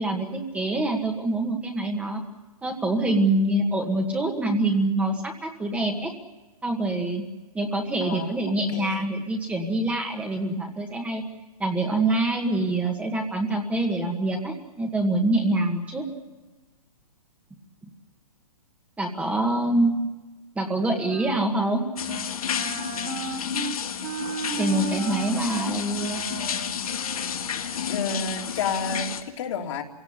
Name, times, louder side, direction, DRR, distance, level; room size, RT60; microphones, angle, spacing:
voice 1, 0.0-2.2 2.6-6.1 6.6-7.2 7.5-11.2 11.6-16.1 19.0-19.9 20.6-21.8 24.6-26.2, right 2 dB, 5° right, 2 dB, 1.8 m, -25 dB
voice 2, 8.0-8.4 8.7-9.1 27.9-29.8, left 5 dB, 55° left, 1 dB, 3.1 m, -30 dB
Wind instrument woodwind instrument, 20.6-21.8 22.1-22.3 22.5-27.8, right 6 dB, 40° right, 3.0 m, -36 dB
sound 1, 22.0-29.2, left 7 dB, 75° left, 2.1 m, -31 dB
25.0 x 17.5 x 9.7 m, 1.2 s
hypercardioid pair, 145°, 19 cm